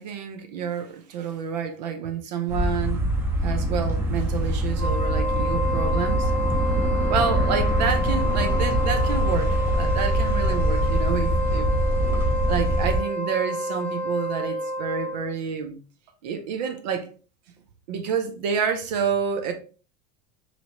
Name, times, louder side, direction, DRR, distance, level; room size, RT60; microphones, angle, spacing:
voice 1, 0.0-3.0 3.4-6.3 7.1-9.5 9.8-11.7 12.5-15.8 16.2-17.1 17.9-19.5, right 6 dB, 80° right, 0.7 m, -28 dB
sound 1, 2.5-13.0, equal, 10° right, 0.8 m, -24 dB
Wind instrument woodwind instrument, 4.7-15.3, equal, 45° right, 1.8 m, -29 dB
2.9 x 2.8 x 2.9 m
supercardioid pair, 115°, 21 cm